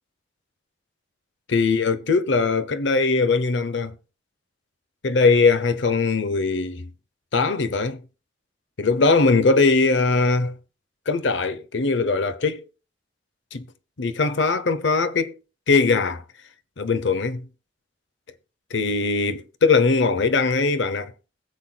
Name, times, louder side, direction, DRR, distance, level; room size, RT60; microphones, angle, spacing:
voice 1, 1.5-3.9 5.0-6.9 7.3-8.0 8.8-10.6 11.1-12.7 13.5-13.6 14.0-15.4 15.7-16.2 16.8-17.5 18.7-21.1, left 4 dB, 80° left, 0.8 m, -21 dB
21.0 x 7.7 x 2.3 m
head